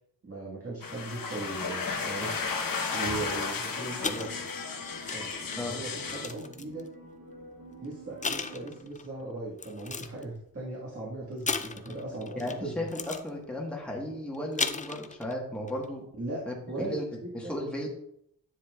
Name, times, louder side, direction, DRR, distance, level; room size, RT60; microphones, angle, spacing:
voice 1, 0.2-2.3 2.9-4.3 5.1-6.9 7.8-12.8 16.2-17.6, right 2 dB, 40° right, -5 dB, 1.8 m, -38 dB
sound 1, 0.8-6.3, left 5 dB, 70° left, 1.1 m, -34 dB
sound 2, 1.2-8.8, right 1 dB, 85° right, 1.5 m, -49 dB
sound 3, 4.0-6.9 7.6-7.8 8.2-9.1 9.6-10.2 11.5-12.6 12.9-13.3 14.3-15.3 15.7-15.9, left 4 dB, 25° left, 0.3 m, -35 dB
voice 2, 12.3-16.0 16.5-17.0 17.3-17.9, left 1 dB, 5° left, -2 dB, 1.4 m, -35 dB
10.0 x 7.3 x 2.4 m, 0.72 s
wide cardioid pair, 140°, 35 cm